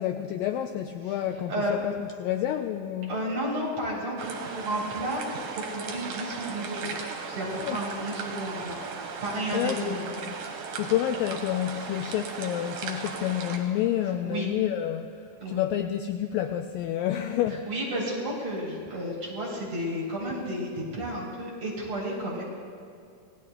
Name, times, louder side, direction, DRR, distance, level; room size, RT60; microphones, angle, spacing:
voice 1, 0.0-1.9 2.2-3.2 7.6-7.8 9.5-10.3 10.7-15.2 15.5-17.7, left 11 dB, 85° left, 6 dB, 2.0 m, -29 dB
voice 2, 3.1-5.4 5.7-6.9 7.3-8.8 9.2-10.0 14.2-14.5 15.4-15.6 17.7-22.4, right 1 dB, 45° right, -4 dB, 4.4 m, -32 dB
sound 1, 4.2-13.6, right 5 dB, 65° right, 2.8 m, -37 dB
27.0 x 18.0 x 2.2 m, 2.4 s
omnidirectional pair, 4.5 m